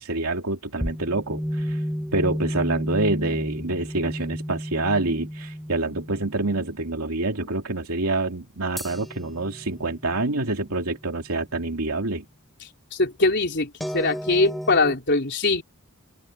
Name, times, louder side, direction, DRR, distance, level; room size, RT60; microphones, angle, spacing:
voice 1, 0.0-1.8 2.1-12.2, right 2 dB, 75° right, 2.7 m, -27 dB
sound 1, 0.8-7.0 8.8-11.5 13.8-15.0, equal, ahead, 7.1 m, -32 dB
voice 2, 12.9-15.6, left 3 dB, 50° left, 4.1 m, -22 dB
open air
head